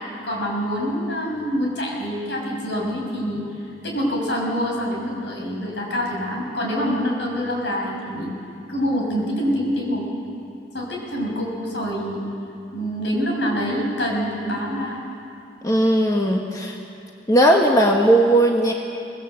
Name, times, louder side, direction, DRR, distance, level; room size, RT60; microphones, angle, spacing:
voice 1, 0.2-3.4 3.8-8.3 8.7-10.0 10.7-12.2 12.7-15.0, equal, 75° left, -1 dB, 6.0 m, -25 dB
voice 2, 15.6-16.8 17.3-18.7, right 1 dB, 20° left, 1 dB, 1.4 m, -17 dB
24.5 x 19.5 x 7.9 m, 2.6 s
head